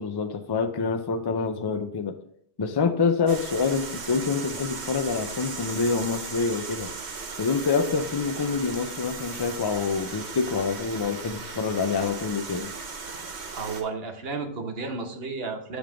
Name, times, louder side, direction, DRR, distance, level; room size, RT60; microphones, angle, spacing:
voice 1, 0.0-2.2 2.6-6.9 7.4-12.7, left 5 dB, 35° left, 7 dB, 0.4 m, -26 dB
sound 1, 3.3-13.8, right 4 dB, 85° right, 1.2 m, -37 dB
voice 2, 13.5-15.8, right 4 dB, 70° right, 4 dB, 1.2 m, -32 dB
7.6 x 3.5 x 4.9 m, 0.70 s
omnidirectional pair, 1.1 m